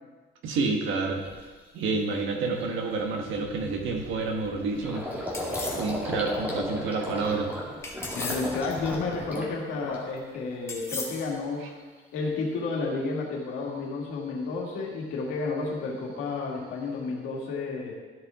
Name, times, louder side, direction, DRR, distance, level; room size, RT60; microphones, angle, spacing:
voice 1, 0.4-1.2 1.7-5.0 5.7-7.5, right 3 dB, 70° right, 2 dB, 1.6 m, -29 dB
Gurgling, 0.7-0.8 1.3-1.5 1.9-2.1 2.3-10.4 10.7-11.3, left 1 dB, 10° right, 1.8 m, -36 dB
sound 1, 5.3-5.9 7.8-8.6 10.7-11.3, left 2 dB, 10° left, 1.0 m, -36 dB
voice 2, 8.1-11.7 12.1-18.0, left 3 dB, 75° left, -2 dB, 2.1 m, -31 dB
13.0 x 5.8 x 3.7 m, 1.4 s
cardioid pair, 160°, 21 cm